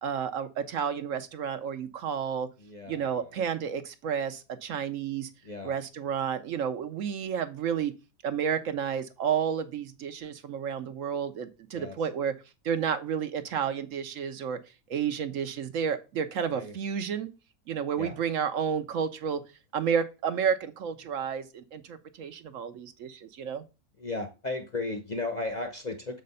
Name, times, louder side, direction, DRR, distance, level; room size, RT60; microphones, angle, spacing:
voice 1, 0.0-2.5 2.9-5.3 5.6-7.9 8.2-12.3 12.6-14.6 14.9-17.3 17.7-19.4 19.7-23.6, right 7 dB, 65° right, 0.9 m, -31 dB
voice 2, 2.6-3.4 5.4-5.8 11.7-12.0 16.5-16.7 18.0-18.2 24.0-26.2, left 2 dB, 40° left, 0.7 m, -35 dB
6.6 x 4.1 x 5.4 m
omnidirectional pair, 1.6 m